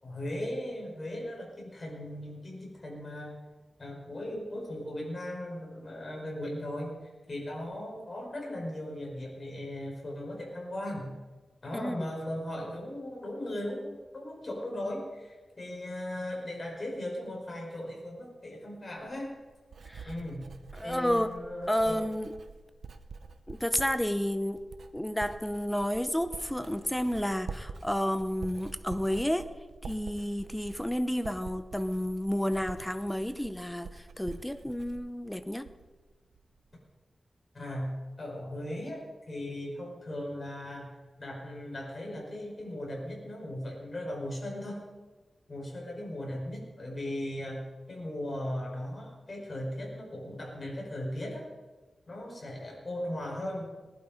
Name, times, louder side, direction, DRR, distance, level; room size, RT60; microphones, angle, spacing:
voice 1, 0.0-3.4 3.8-6.9 7.3-11.1 11.6-19.3 20.0-20.4 20.8-22.1 37.5-40.9 41.2-44.8 45.5-51.5 52.1-53.7, left 1 dB, 40° left, -2 dB, 5.5 m, -38 dB
voice 2, 11.7-12.1 19.9-20.1 20.8-21.3 21.7-22.3 23.5-24.6 24.9-29.5 29.8-35.7, equal, 5° left, 10 dB, 0.8 m, -31 dB
Writing, 19.0-36.0 36.3-36.8, right 4 dB, 85° right, 0.9 m, -47 dB
19.5 x 11.5 x 5.3 m, 1.3 s
wide cardioid pair, 100°, 0 cm